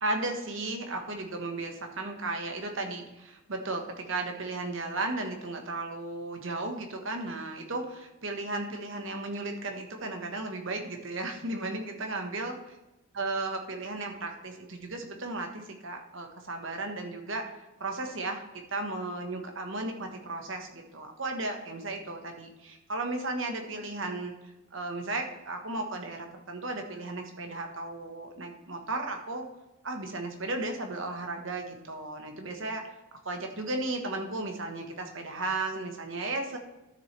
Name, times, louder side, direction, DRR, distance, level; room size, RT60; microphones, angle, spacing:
voice 1, 0.0-12.7 13.2-17.5 17.8-18.4 18.7-24.3 24.7-29.5 29.8-32.9 33.2-36.6, right 2 dB, 60° right, 4 dB, 1.4 m, -35 dB
12.5 x 7.0 x 3.4 m, 0.99 s
head